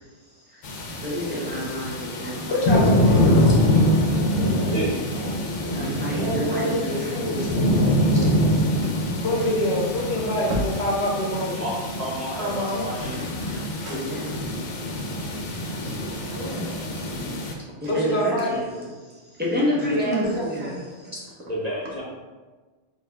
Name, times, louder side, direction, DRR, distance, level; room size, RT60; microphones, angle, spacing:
voice 1, 0.5-2.9 5.7-7.4 13.9-14.2 15.8-15.9 17.8-18.9 19.4-20.7, equal, 10° right, -6 dB, 1.0 m, -29 dB
sound 1, 0.6-17.5, left 1 dB, 80° left, 1.0 m, -24 dB
voice 2, 2.5-3.3 9.2-10.5 10.8-11.6 17.9-18.6, left 1 dB, 60° left, -3 dB, 1.2 m, -24 dB
voice 3, 4.4-4.8 6.1-7.9 9.4-9.5 10.5-10.7 11.4-11.5 12.4-13.5 13.8-14.0 16.3-16.7 19.9-20.8, equal, 65° right, -4 dB, 1.2 m, -30 dB
voice 4, 11.5-13.2 19.7-19.9 21.1-22.0, right 1 dB, 40° right, -6 dB, 0.8 m, -31 dB
4.2 x 3.2 x 3.5 m, 1.3 s
omnidirectional pair, 1.2 m